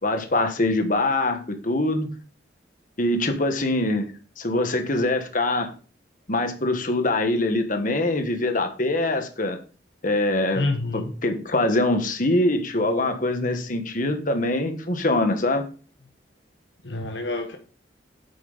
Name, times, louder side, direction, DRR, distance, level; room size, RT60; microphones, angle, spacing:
voice 1, 0.0-2.1 3.0-4.1 4.4-5.7 6.3-9.6 10.0-10.6 10.9-15.7, left 2 dB, 45° left, 6 dB, 1.4 m, -23 dB
voice 2, 10.5-11.1 16.8-17.6, left 2 dB, 65° left, 4 dB, 1.2 m, -27 dB
8.4 x 8.1 x 4.0 m, 0.38 s
head